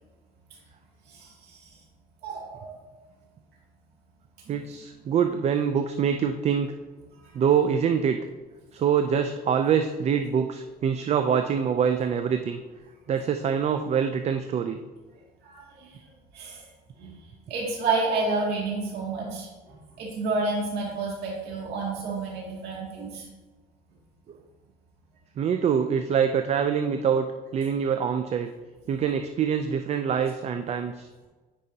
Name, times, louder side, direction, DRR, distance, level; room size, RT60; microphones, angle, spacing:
voice 1, 1.1-1.8 2.2-2.8 4.5-4.6 7.2-7.3 15.4-16.1 16.3-16.6 17.0-17.2 17.5-23.3, right 3 dB, 75° right, -4 dB, 2.3 m, -30 dB
voice 2, 4.5-6.7 7.3-8.2 8.7-12.6 13.1-14.8 25.4-27.3 27.5-28.5 28.9-31.1, right 7 dB, 40° right, 7 dB, 0.4 m, -25 dB
9.4 x 4.8 x 2.8 m, 1.2 s
cardioid pair, 110°, 17 cm